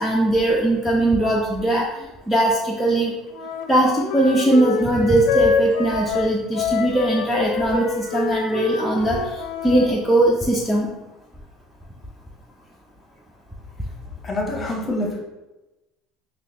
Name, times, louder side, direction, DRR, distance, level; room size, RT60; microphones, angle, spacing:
voice 1, 0.0-1.9 2.3-3.1 3.7-10.9, right 1 dB, ahead, -4 dB, 0.4 m, -20 dB
Wind instrument woodwind instrument, 3.3-9.9, left 6 dB, 75° left, 0.4 m, -26 dB
voice 2, 14.2-15.2, left 1 dB, 25° left, 0 dB, 0.8 m, -26 dB
3.9 x 2.9 x 2.6 m, 1.0 s
cardioid pair, 130°, 0 cm